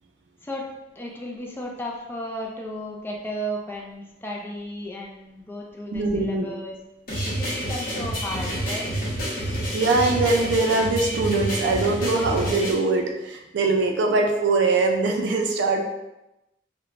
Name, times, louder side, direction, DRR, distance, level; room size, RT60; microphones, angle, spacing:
voice 1, 1.0-6.7 7.2-8.9, equal, 10° left, -1 dB, 0.3 m, -34 dB
voice 2, 5.9-6.5 9.7-15.8, right 3 dB, 80° right, 3 dB, 0.4 m, -22 dB
sound 1, 7.1-12.7, right 1 dB, 50° left, 0.9 m, -28 dB
3.0 x 2.1 x 2.4 m, 0.95 s
head